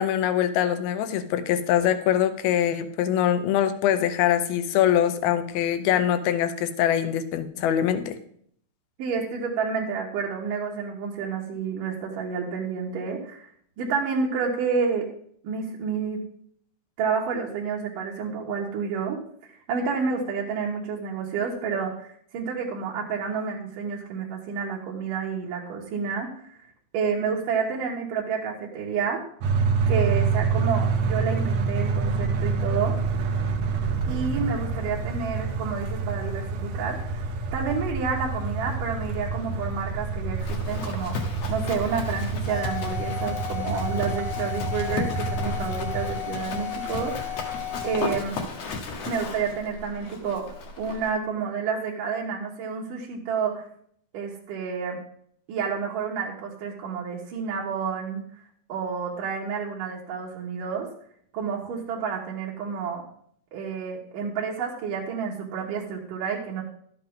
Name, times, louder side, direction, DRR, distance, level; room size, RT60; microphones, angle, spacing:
voice 1, 0.0-8.2, left 10 dB, 80° left, 11 dB, 2.6 m, -23 dB
voice 2, 9.0-13.5 13.8-15.1 15.4-16.2 17.0-22.1 22.3-26.6 26.9-29.2 29.9-33.0 34.1-37.2 37.5-47.5 47.8-48.4 49.0-50.5 50.8-53.6 54.1-55.0 55.5-58.2 58.7-60.9 61.3-63.0 63.5-66.6, right 6 dB, 65° right, -4 dB, 2.7 m, -29 dB
sound 1, 29.4-46.1, right 4 dB, 90° right, 1.4 m, -27 dB
Livestock farm animals working animals, 40.3-51.1, left 3 dB, 60° left, 1.8 m, -35 dB
sound 2, 42.5-48.4, left 12 dB, 10° left, 1.0 m, -35 dB
12.5 x 7.9 x 3.7 m, 0.64 s
omnidirectional pair, 4.5 m